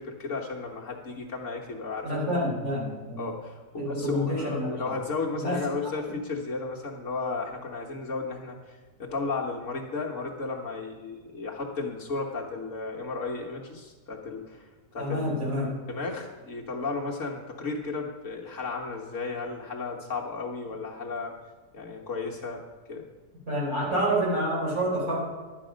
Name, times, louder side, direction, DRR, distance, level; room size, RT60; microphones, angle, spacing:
voice 1, 0.0-2.4 3.2-15.6 15.9-21.3 21.7-22.6 22.9-23.0, left 4 dB, 50° left, -2 dB, 1.5 m, -34 dB
voice 2, 2.0-3.3 3.8-4.9 5.4-5.6 15.0-15.7 23.5-25.2, equal, 55° right, -5 dB, 4.5 m, -28 dB
12.0 x 8.9 x 5.1 m, 1.3 s
omnidirectional pair, 1.7 m